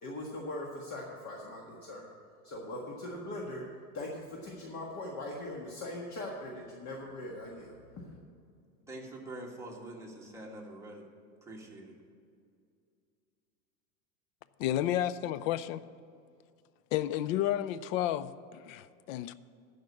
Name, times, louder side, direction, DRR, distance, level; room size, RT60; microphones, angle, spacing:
voice 1, 0.0-2.1 2.4-3.6 3.9-7.8, left 1 dB, 40° left, 1.6 m, -40 dB
voice 2, 8.9-11.1 11.4-11.9, right 1 dB, 5° right, 1.7 m, -45 dB
voice 3, 14.6-15.8 16.9-19.3, left 12 dB, 65° left, 0.6 m, -31 dB
12.0 x 5.1 x 8.5 m
supercardioid pair, 130°, 44 cm